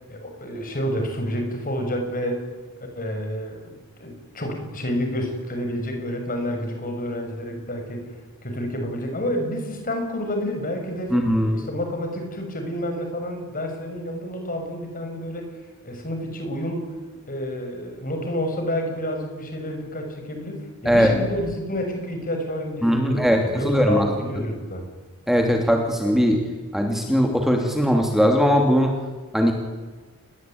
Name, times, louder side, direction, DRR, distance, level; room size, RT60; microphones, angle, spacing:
voice 1, 0.1-2.4 3.0-11.3 11.5-15.5 15.8-16.9 17.3-24.9, equal, 40° left, 4 dB, 6.9 m, -29 dB
voice 2, 11.1-11.6 20.8-21.1 22.8-24.1 25.3-26.4 26.7-28.9 29.3-29.5, equal, ahead, 2 dB, 2.7 m, -19 dB
29.0 x 21.0 x 9.4 m, 1.3 s
head